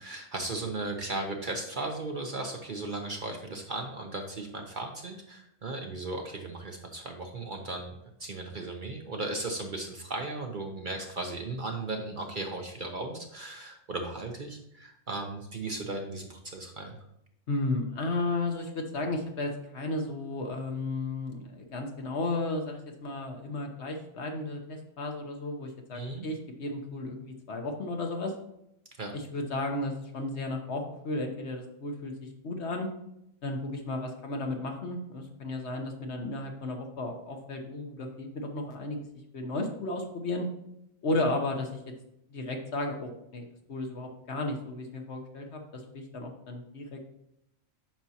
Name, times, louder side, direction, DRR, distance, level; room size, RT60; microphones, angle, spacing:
voice 1, 0.0-7.9 8.2-17.0 25.9-26.3 29.0-29.1, right 2 dB, 45° right, 3 dB, 0.8 m, -36 dB
voice 2, 17.5-28.3 29.1-32.9 33.4-39.0 39.3-40.5 41.0-41.8 42.3-47.0, left 2 dB, 55° left, 3 dB, 1.2 m, -34 dB
8.9 x 5.9 x 2.8 m, 0.80 s
omnidirectional pair, 1.4 m